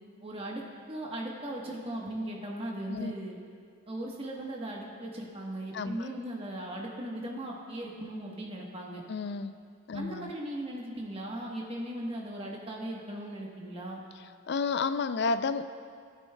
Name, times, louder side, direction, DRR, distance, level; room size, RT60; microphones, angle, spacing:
voice 1, 0.2-3.4 3.9-9.0 9.9-14.0, right 1 dB, 30° right, -2 dB, 1.1 m, -38 dB
voice 2, 5.7-6.1 9.1-9.5 9.9-10.3 14.5-15.6, left 4 dB, 55° left, 12 dB, 0.3 m, -31 dB
15.5 x 9.3 x 2.2 m, 2.4 s
head